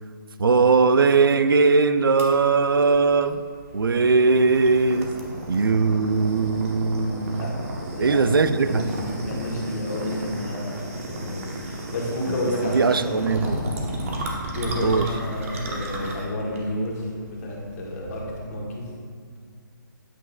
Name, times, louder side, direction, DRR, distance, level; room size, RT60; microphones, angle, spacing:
voice 1, 0.4-3.4 3.7-5.1 5.5-7.5 8.0-8.8 12.3-13.6 14.8-15.1, right 4 dB, 90° right, 11 dB, 0.4 m, -20 dB
sound 1, 2.2-18.5, right 1 dB, 40° right, 1.0 m, -34 dB
voice 2, 7.9-8.2 8.6-13.3 14.5-18.9, left 1 dB, 40° left, -3 dB, 1.5 m, -30 dB
8.4 x 5.3 x 2.3 m, 2.1 s
hypercardioid pair, 150°, 11 cm